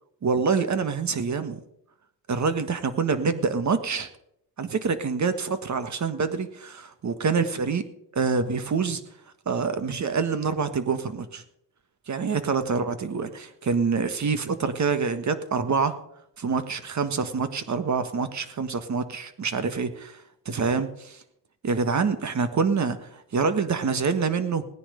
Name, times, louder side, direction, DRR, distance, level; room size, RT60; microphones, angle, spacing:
voice 1, 0.2-1.6 2.3-4.1 4.6-9.0 9.4-11.4 12.1-16.0 16.4-20.2 20.4-21.2 21.6-24.6, right 5 dB, 40° right, 10 dB, 1.6 m, -26 dB
18.0 x 10.0 x 5.1 m, 0.77 s
cardioid pair, 110°, 43 cm